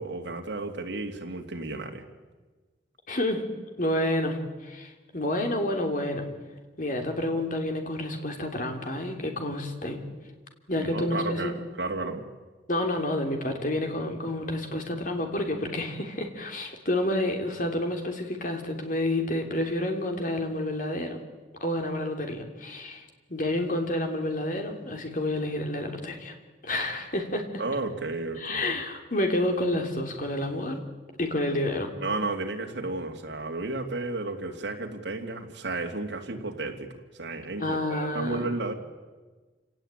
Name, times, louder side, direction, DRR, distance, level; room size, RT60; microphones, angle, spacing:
voice 1, 0.0-2.0 10.8-12.2 27.6-28.7 32.0-36.9 37.1-38.7, right 2 dB, 70° right, 2 dB, 2.7 m, -33 dB
voice 2, 3.1-3.4 3.8-6.3 6.8-10.0 10.7-11.5 12.7-21.2 21.6-26.3 26.6-27.5 28.4-30.8 31.2-31.9 37.6-38.4, left 1 dB, 45° left, 4 dB, 3.3 m, -29 dB
27.5 x 18.0 x 9.0 m, 1.3 s
head